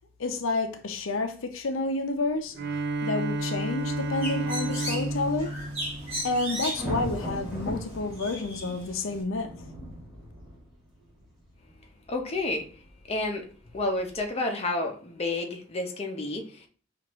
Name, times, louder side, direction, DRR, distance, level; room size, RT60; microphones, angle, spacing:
voice 1, 0.2-2.5 3.0-5.5 6.2-9.5, left 3 dB, 85° left, 0.6 m, -29 dB
Bowed string instrument, 2.5-6.8, right 1 dB, 60° right, 0.4 m, -32 dB
sound 1, 3.7-14.2, equal, ahead, 1.9 m, -40 dB
Bird, 3.8-9.2, equal, 30° right, 2.1 m, -37 dB
voice 2, 12.1-12.7 13.1-13.4 13.7-16.7, left 2 dB, 30° left, 0.6 m, -30 dB
6.0 x 2.5 x 3.0 m
head